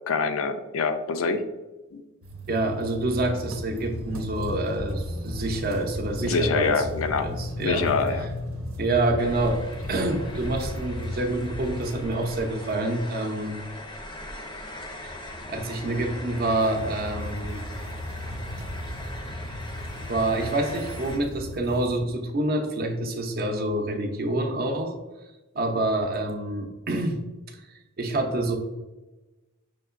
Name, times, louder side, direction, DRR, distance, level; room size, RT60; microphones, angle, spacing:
voice 1, 0.1-1.4 1.9-2.0 6.2-7.3 7.6-8.3, left 4 dB, 75° left, 9 dB, 0.4 m, -25 dB
sound 1, 2.2-12.8 14.8-22.0, left 1 dB, 85° right, 0.8 m, -36 dB
voice 2, 2.5-6.8 7.2-7.9 8.8-13.6 15.0-15.2 15.5-17.7 20.1-25.0 25.5-27.2 28.0-28.6, right 2 dB, 50° right, 4 dB, 0.6 m, -27 dB
sound 2, 9.2-21.2, left 1 dB, 20° left, 0.5 m, -40 dB
5.8 x 2.8 x 2.4 m, 1.1 s
head